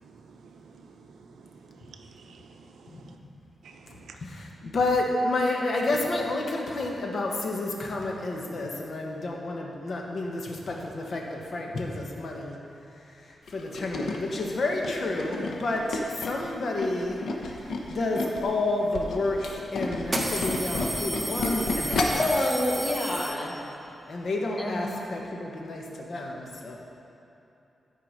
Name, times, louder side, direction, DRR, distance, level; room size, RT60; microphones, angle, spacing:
voice 1, 0.0-0.7 1.1-3.2 3.6-4.1, right 5 dB, 90° right, 4 dB, 0.6 m, -51 dB
voice 2, 2.9-3.2 4.2-12.6 13.0-17.2 17.5-22.2 24.1-26.8, left 2 dB, 55° left, 0 dB, 1.1 m, -30 dB
Tools, 13.5-18.5 18.8-22.3 22.7-22.9 23.2-23.3, left 3 dB, 80° left, 0.9 m, -31 dB
sound 1, 18.9-19.0 20.0-23.8, right 2 dB, 25° right, 0.9 m, -33 dB
voice 3, 22.1-23.5 24.6-25.0, left 1 dB, 20° left, -3 dB, 1.5 m, -28 dB
12.0 x 4.9 x 5.1 m, 3.0 s
wide cardioid pair, 125°, 0 cm